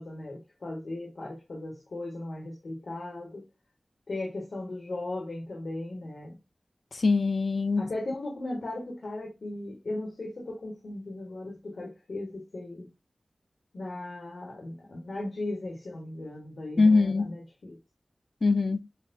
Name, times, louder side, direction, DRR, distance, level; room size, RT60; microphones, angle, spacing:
voice 1, 0.0-3.4 4.1-6.4 7.8-12.9 13.7-17.8, left 2 dB, 90° left, 1.3 m, -37 dB
voice 2, 6.9-7.9 16.8-17.3 18.4-18.9, left 3 dB, 70° left, 0.3 m, -23 dB
7.1 x 2.6 x 2.2 m
wide cardioid pair, 80°, 0 cm